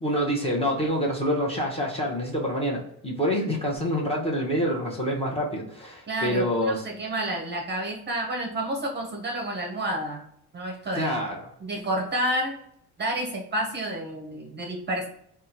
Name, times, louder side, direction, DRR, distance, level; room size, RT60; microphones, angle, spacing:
voice 1, 0.0-6.8 10.9-11.5, equal, 15° left, -3 dB, 0.9 m, -27 dB
voice 2, 6.1-10.2 10.5-11.2 11.6-12.6 13.0-15.1, right 1 dB, 30° right, 0 dB, 0.7 m, -30 dB
3.6 x 2.3 x 2.8 m, 0.72 s
cardioid pair, 125°, 37 cm